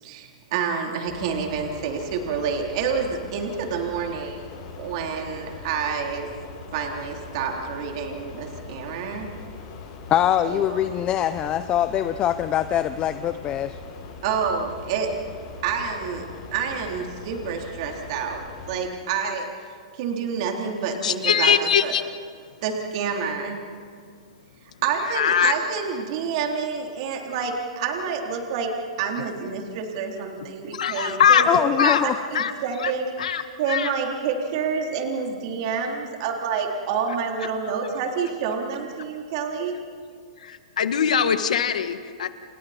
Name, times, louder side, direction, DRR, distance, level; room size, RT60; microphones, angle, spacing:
voice 1, 0.0-6.3 6.7-9.3 10.4-10.8 14.2-15.1 15.6-16.2 16.5-19.5 19.9-21.5 21.8-21.9 22.6-23.6 24.8-28.7 29.0-33.1 33.6-39.8, right 6 dB, 50° right, 1 dB, 3.6 m, -28 dB
sound 1, 1.1-18.7, left 4 dB, 45° left, 7.6 m, -41 dB
voice 2, 10.1-13.8 31.5-32.2, left 11 dB, 25° left, 11 dB, 0.7 m, -23 dB
voice 3, 21.0-22.0 25.1-25.5 30.7-31.5 31.8-32.0 32.3-32.5 32.8-32.9 33.2-33.4 33.7-33.9 40.4-42.3, left 8 dB, 85° left, 9 dB, 1.7 m, -21 dB
29.5 x 28.0 x 4.4 m, 2.1 s
hypercardioid pair, 145°, 4 cm